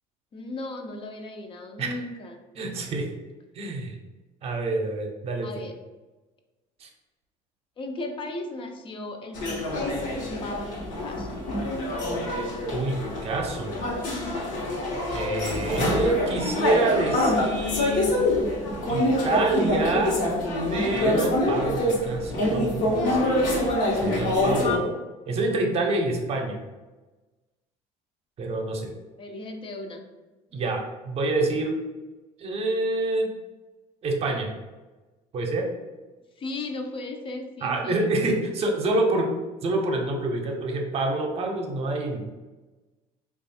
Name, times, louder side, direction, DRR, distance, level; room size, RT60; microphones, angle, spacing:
voice 1, 0.3-2.4 5.4-5.7 7.8-10.1 10.4-11.3 29.2-30.0 36.4-38.0, left 2 dB, 35° left, 4 dB, 0.5 m, -36 dB
voice 2, 2.6-3.1 3.5-4.0 4.4-5.5 6.8-6.9 12.7-13.8 15.1-18.3 18.9-20.2 20.7-23.3 24.0-24.9 25.3-26.6 28.4-28.9 30.5-31.8 32.4-33.3 34.0-34.5 35.3-35.7 37.6-39.4 39.6-42.3, right 2 dB, 45° right, 2 dB, 0.7 m, -27 dB
sound 1, 9.3-24.8, left 1 dB, 70° left, 1.0 m, -25 dB
3.0 x 2.4 x 4.2 m, 1.2 s
cardioid pair, 120°, 15 cm